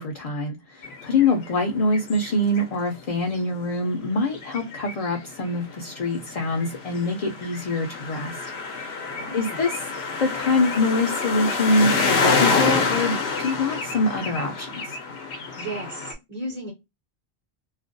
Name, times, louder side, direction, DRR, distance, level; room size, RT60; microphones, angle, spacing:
voice 1, 0.0-9.1 9.3-9.8 10.2-15.0, left 2 dB, 50° left, 0.5 m, -25 dB
sound 1, 0.8-2.7 2.9-3.0 3.3-16.1, left 4 dB, 85° left, 0.9 m, -28 dB
voice 2, 9.2-9.6 15.6-16.7, right 2 dB, 40° right, 0.8 m, -35 dB
2.4 x 2.2 x 2.4 m
omnidirectional pair, 1.1 m